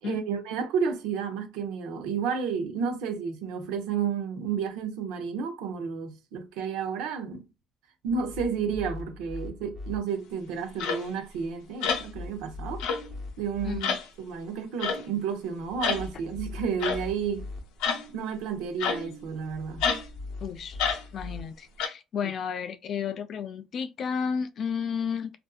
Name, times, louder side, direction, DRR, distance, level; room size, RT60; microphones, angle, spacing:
voice 1, 0.0-7.4 8.0-12.8 13.4-17.5 18.1-19.9, right 6 dB, 85° right, 0.6 m, -31 dB
sound 1, 8.1-10.0 11.9-13.8 15.7-17.6 19.5-21.4, left 3 dB, 5° left, 0.6 m, -41 dB
sound 2, 10.8-11.0 11.8-12.1 12.8-13.1 13.8-14.0 14.8-15.1 15.8-16.0 16.8-17.0 17.8-18.1 18.8-19.2 19.8-20.0 20.8-21.0 21.8-21.9, left 6 dB, 85° left, 0.6 m, -28 dB
voice 2, 20.4-25.4, left 7 dB, 45° left, 0.3 m, -32 dB
2.5 x 2.5 x 2.3 m
cardioid pair, 140°, 0 cm